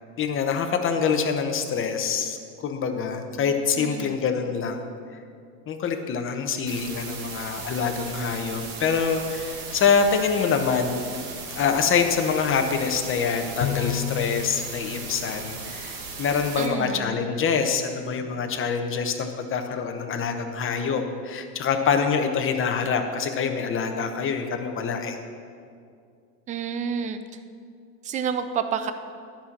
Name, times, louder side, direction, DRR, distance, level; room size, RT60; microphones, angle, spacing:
voice 1, 0.2-4.9 5.7-11.0 11.5-25.2, left 6 dB, 25° left, 5 dB, 1.0 m, -25 dB
voice 2, 3.8-4.2 16.6-17.2 26.5-27.2 28.0-28.9, right 7 dB, 20° right, 10 dB, 0.3 m, -29 dB
sound 1, 6.7-16.7, right 4 dB, 45° right, 1.7 m, -37 dB
Bowed string instrument, 13.6-16.2, left 11 dB, 60° left, 0.9 m, -33 dB
11.0 x 5.8 x 7.3 m, 2.3 s
supercardioid pair, 120°, 46 cm